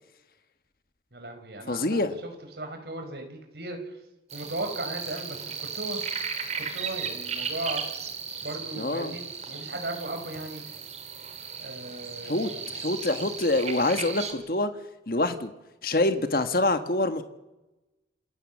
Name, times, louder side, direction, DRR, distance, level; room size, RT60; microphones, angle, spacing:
voice 1, 1.1-2.3 2.6-3.8 4.3-6.0 6.6-7.8 8.4-10.6 11.6-12.7, right 1 dB, 70° right, 5 dB, 5.1 m, -37 dB
voice 2, 1.7-2.2 8.7-9.1 12.2-14.7 15.1-15.5 15.8-17.2, left 2 dB, 55° left, 9 dB, 1.4 m, -26 dB
sound 1, 4.3-14.3, right 6 dB, 40° right, 2.7 m, -36 dB
28.0 x 16.0 x 7.4 m, 1.0 s
head